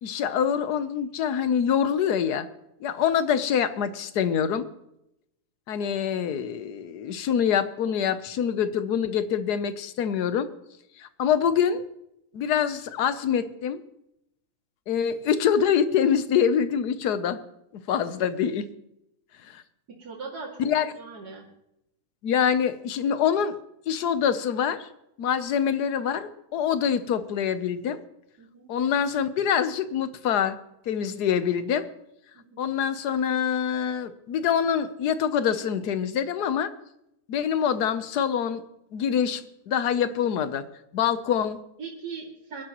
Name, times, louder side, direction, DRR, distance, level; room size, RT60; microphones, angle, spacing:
voice 1, 0.0-2.5 2.8-4.7 5.7-10.5 11.0-11.8 12.3-13.8 14.9-17.4 17.7-18.7 19.5-19.6 20.6-20.9 22.2-23.6 23.9-24.9 25.2-28.0 28.7-30.6 30.9-31.9 32.6-36.7 37.3-38.6 38.9-40.7 40.9-41.6, left 8 dB, 90° left, 12 dB, 1.4 m, -25 dB
voice 2, 20.0-20.7 21.0-21.5 28.4-28.7 32.3-32.7 41.8-42.6, right 5 dB, 85° right, -5 dB, 2.9 m, -39 dB
22.5 x 11.5 x 3.0 m, 0.81 s
omnidirectional pair, 1.7 m